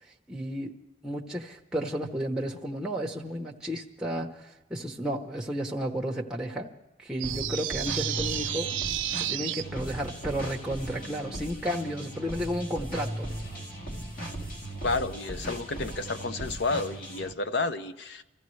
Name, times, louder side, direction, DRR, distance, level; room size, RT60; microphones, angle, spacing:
voice 1, 0.3-0.7 1.0-6.7 7.0-8.8 9.2-13.3, equal, 5° right, 0 dB, 0.9 m, -32 dB
sound 1, 7.2-17.3, right 1 dB, 50° left, 1.9 m, -38 dB
sound 2, 7.2-9.6, right 12 dB, 90° right, 0.5 m, -31 dB
voice 2, 14.8-18.2, left 3 dB, 65° left, 10 dB, 0.7 m, -31 dB
26.5 x 14.5 x 3.2 m, 0.99 s
head